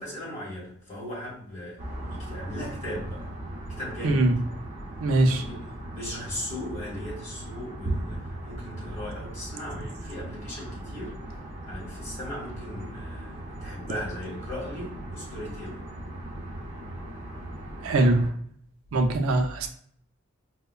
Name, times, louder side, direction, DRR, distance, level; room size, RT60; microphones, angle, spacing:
voice 1, 0.0-1.8 2.1-3.3 3.7-4.3 5.2-15.8, left 1 dB, 35° left, -4 dB, 1.3 m, -38 dB
sound 1, 1.8-18.3, right 1 dB, 30° right, 0.7 m, -38 dB
voice 2, 4.0-4.3 5.0-5.4 17.8-18.2 18.9-19.7, right 2 dB, 80° right, 5 dB, 0.4 m, -22 dB
4.8 x 2.1 x 2.3 m, 0.64 s
head